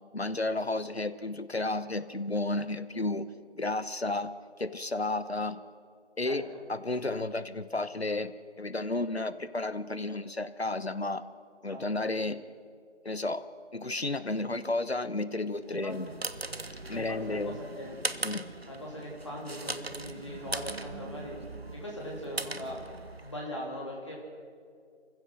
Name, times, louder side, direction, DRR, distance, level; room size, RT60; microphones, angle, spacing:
voice 1, 0.1-3.3 3.6-4.3 4.6-5.6 6.2-11.2 11.6-12.4 13.0-13.5 13.7-16.1 16.9-17.6 18.2-18.5, left 2 dB, 60° left, 14 dB, 1.2 m, -32 dB
voice 2, 6.2-6.6 11.7-11.8 15.7-16.1 16.9-17.9 18.7-21.4 21.7-22.8 23.2-24.2, equal, 25° left, -4 dB, 3.3 m, -40 dB
sound 1, 15.7-23.5, right 2 dB, 60° right, 1.0 m, -39 dB
28.5 x 15.5 x 6.2 m, 2.2 s
figure-of-eight pair, 170°, 35 cm